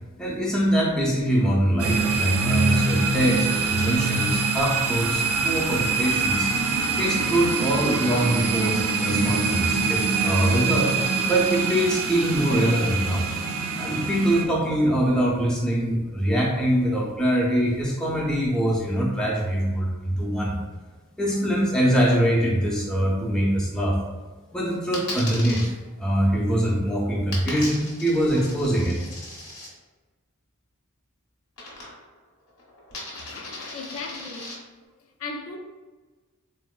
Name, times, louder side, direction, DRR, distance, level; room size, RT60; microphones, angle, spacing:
voice 1, 0.2-6.5 7.0-13.3 13.8-20.6 21.2-24.0 24.5-25.7 26.0-29.0, right 1 dB, 5° left, 0.4 m, -23 dB
sound 1, 1.8-14.4, right 4 dB, 60° right, 0.3 m, -24 dB
Coin (dropping), 24.9-25.7 27.3-29.7 31.6-32.2 32.5-34.5, left 2 dB, 90° left, 1.0 m, -37 dB
voice 2, 33.1-34.5 35.2-35.6, left 3 dB, 60° left, 0.4 m, -37 dB
3.8 x 2.1 x 2.3 m
head